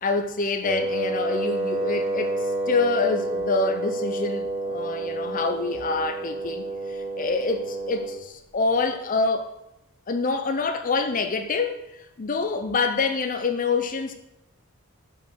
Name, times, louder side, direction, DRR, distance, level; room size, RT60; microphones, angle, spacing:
voice 1, 0.0-9.5 10.1-14.1, left 4 dB, 40° left, 0.6 m, -26 dB
Wind instrument woodwind instrument, 0.6-8.2, right 2 dB, 25° right, 1.0 m, -29 dB
6.7 x 5.4 x 6.3 m
head